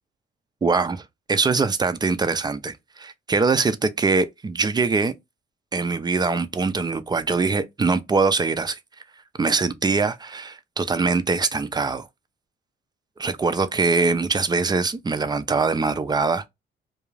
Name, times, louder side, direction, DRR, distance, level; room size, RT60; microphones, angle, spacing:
voice 1, 0.6-1.0 1.3-5.1 5.7-8.8 9.4-12.1 13.2-16.5, right 4 dB, 20° right, 0.4 m, -23 dB
2.4 x 2.3 x 3.1 m
cardioid pair, 90°, 20 cm